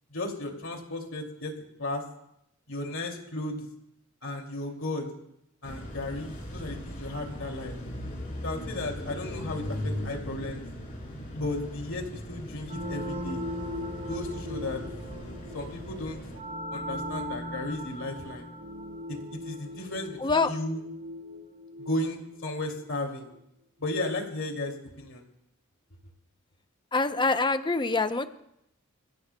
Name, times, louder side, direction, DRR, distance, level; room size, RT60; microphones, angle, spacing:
voice 1, 0.1-1.5 1.8-2.0 2.7-3.7 4.2-5.1 5.6-7.8 8.4-10.6 11.3-13.4 14.0-14.8 15.5-16.2 16.7-18.5 19.1-19.2 19.4-20.8 21.8-23.3 23.8-25.2, left 2 dB, 65° left, 2 dB, 2.6 m, -34 dB
sound 1, 5.6-16.4, left 1 dB, 40° left, 3.7 m, -39 dB
sound 2, 12.6-23.1, left 1 dB, 40° right, 5.2 m, -39 dB
voice 2, 20.2-20.5 26.9-28.3, left 3 dB, 20° left, 10 dB, 0.7 m, -25 dB
28.5 x 16.0 x 2.3 m, 0.80 s
head